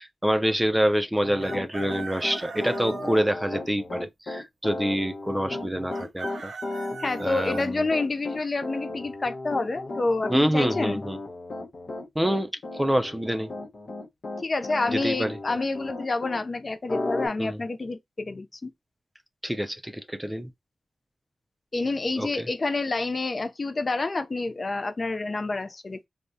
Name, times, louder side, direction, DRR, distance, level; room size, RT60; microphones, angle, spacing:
voice 1, 0.0-6.5 7.2-7.8 10.3-11.2 12.2-13.5 14.9-15.4 17.4-17.6 19.4-20.5 22.2-22.5, equal, 10° right, 0.4 m, -26 dB
Piano, 1.2-16.4 16.9-17.3, left 2 dB, 70° left, 1.0 m, -35 dB
Chicken rooster, 1.4-3.2 5.9-7.7, right 4 dB, 85° right, 0.4 m, -39 dB
voice 2, 7.0-11.0 14.4-18.7 21.7-26.1, left 3 dB, 50° left, 0.4 m, -28 dB
3.4 x 2.1 x 2.6 m
cardioid pair, 45°, 0 cm